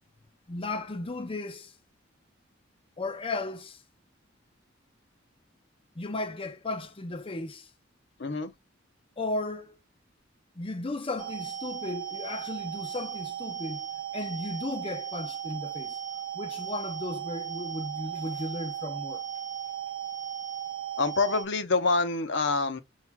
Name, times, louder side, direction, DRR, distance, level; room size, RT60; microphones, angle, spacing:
voice 1, 0.5-1.7 3.0-3.8 6.0-7.7 9.2-9.8 10.6-13.8 14.1-16.0 16.3-19.2, left 2 dB, 30° left, 0.6 m, -35 dB
voice 2, 8.2-8.5 21.0-22.8, left 3 dB, 65° left, 0.7 m, -26 dB
sound 1, 11.2-21.4, right 9 dB, 40° right, 0.9 m, -36 dB
7.1 x 2.5 x 2.2 m
head